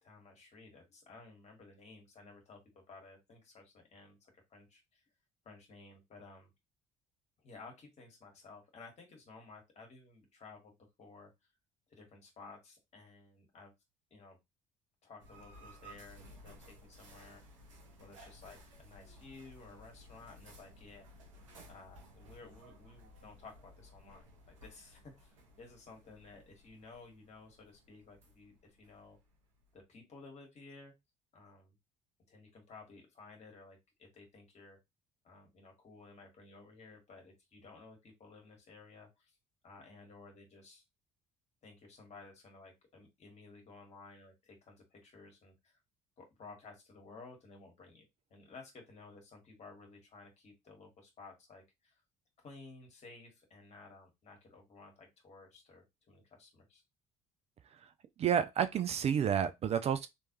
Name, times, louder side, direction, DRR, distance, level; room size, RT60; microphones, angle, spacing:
voice 1, 0.0-5.0 5.4-6.5 7.4-11.3 11.9-13.7 14.1-14.4 15.0-17.4 18.0-21.1 21.7-29.2 29.7-30.9 31.3-31.7 32.3-34.8 35.2-39.3 39.6-40.8 41.6-45.8 46.2-52.0 52.4-56.8, left 3 dB, 45° left, 1.7 m, -55 dB
sound 1, 15.2-29.8, equal, 85° right, 0.8 m, -57 dB
voice 2, 58.2-60.1, right 8 dB, 40° right, 0.4 m, -30 dB
3.1 x 3.1 x 3.0 m
hypercardioid pair, 55°, 16 cm